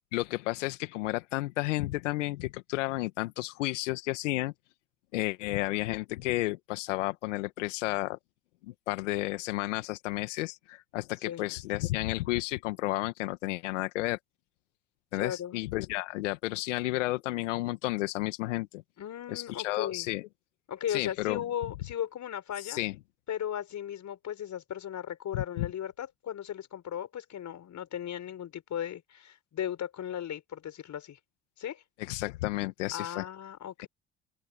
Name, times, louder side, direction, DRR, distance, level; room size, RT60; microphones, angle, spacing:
voice 1, 0.1-4.5 5.1-8.2 8.7-14.2 15.1-18.8 19.3-20.2 20.9-21.4 22.6-22.9 25.3-25.7 32.0-33.3 33.8-33.9, left 19 dB, 80° left, 1.7 m, -32 dB
voice 2, 15.1-15.6 19.0-20.1 20.7-22.8 23.3-31.2 31.6-31.8 32.9-33.9, left 10 dB, 50° left, 5.3 m, -36 dB
open air
hypercardioid pair, 60°, 36 cm